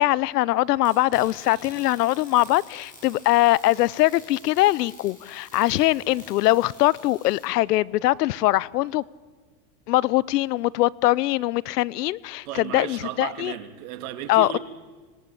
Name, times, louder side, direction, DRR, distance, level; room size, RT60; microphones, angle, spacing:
voice 1, 0.0-9.0 9.9-13.5 14.3-14.6, left 17 dB, 80° left, 0.9 m, -22 dB
sound 1, 0.9-7.5, left 2 dB, 15° left, 7.4 m, -48 dB
voice 2, 12.4-14.6, right 11 dB, 65° right, 2.9 m, -34 dB
26.0 x 19.5 x 8.7 m
supercardioid pair, 135°, 47 cm